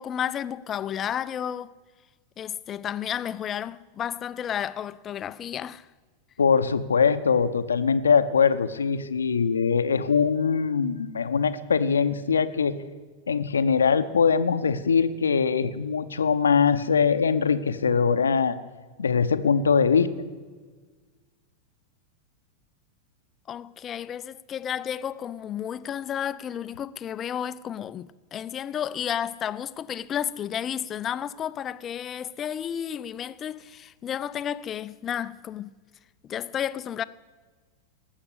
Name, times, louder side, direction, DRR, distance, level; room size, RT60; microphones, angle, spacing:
voice 1, 0.0-1.7 2.4-5.9 23.5-35.7 36.2-37.0, left 9 dB, 25° left, 0.4 m, -32 dB
voice 2, 6.4-12.8 13.3-18.6 19.0-20.1, left 6 dB, 70° left, 0.7 m, -22 dB
18.5 x 7.3 x 8.3 m
figure-of-eight pair, 90°, 0 cm